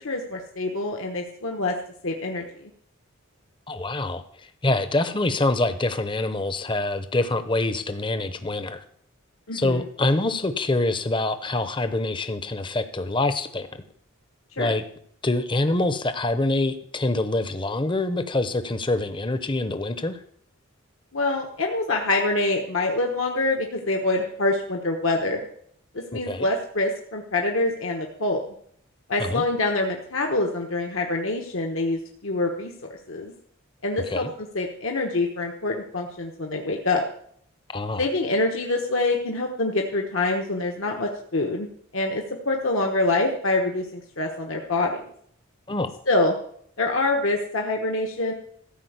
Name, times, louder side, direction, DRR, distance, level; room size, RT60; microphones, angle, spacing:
voice 1, 0.0-1.7 2.0-2.7 9.5-9.8 14.6-14.7 21.1-25.5 25.9-28.4 29.1-33.3 33.8-37.0 38.0-41.7 41.9-45.0 46.1-46.3 46.8-48.3, left 2 dB, 65° left, 1 dB, 1.2 m, -25 dB
voice 2, 3.7-4.2 4.6-8.8 9.5-13.8 14.6-14.8 15.2-20.2 26.1-26.4 29.2-29.4 34.1-34.3 37.7-38.1 45.7-45.9, left 2 dB, 25° left, 10 dB, 0.8 m, -25 dB
14.0 x 5.0 x 8.0 m, 0.66 s
head